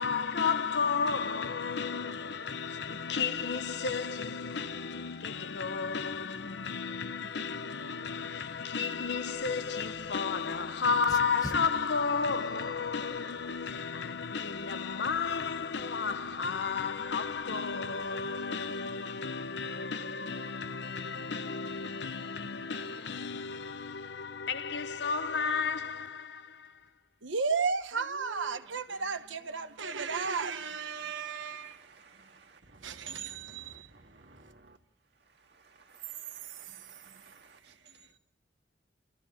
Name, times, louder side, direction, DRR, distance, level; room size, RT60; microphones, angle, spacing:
voice 1, 0.0-26.9, left 5 dB, 65° left, 0.7 m, -33 dB
Dog, 9.0-18.1, left 1 dB, 20° left, 1.3 m, -51 dB
voice 2, 27.2-32.5 32.8-33.9 36.4-37.2, right 5 dB, 80° right, 1.2 m, -35 dB
voice 3, 28.1-34.8 35.0-38.2, right 2 dB, 60° right, 1.9 m, -57 dB
29.5 x 14.5 x 7.3 m
head